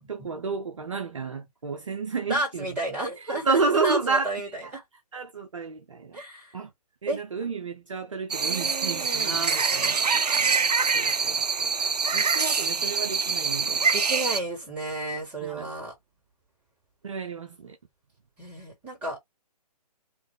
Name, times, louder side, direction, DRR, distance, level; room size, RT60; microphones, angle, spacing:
voice 1, 0.0-2.8 3.2-4.3 4.6-4.7 5.1-6.2 6.5-6.7 7.0-10.6 10.9-11.7 12.1-13.9 15.4-15.7 17.0-17.8, right 4 dB, 50° right, 0.8 m, -31 dB
voice 2, 2.3-4.6 6.1-6.6 7.1-7.2 8.4-9.4 13.9-15.9 18.4-19.2, right 2 dB, 10° right, 2.6 m, -32 dB
sound 1, 8.3-14.4, right 5 dB, 80° right, 0.4 m, -25 dB
3.8 x 2.7 x 3.4 m
figure-of-eight pair, 140°, 20 cm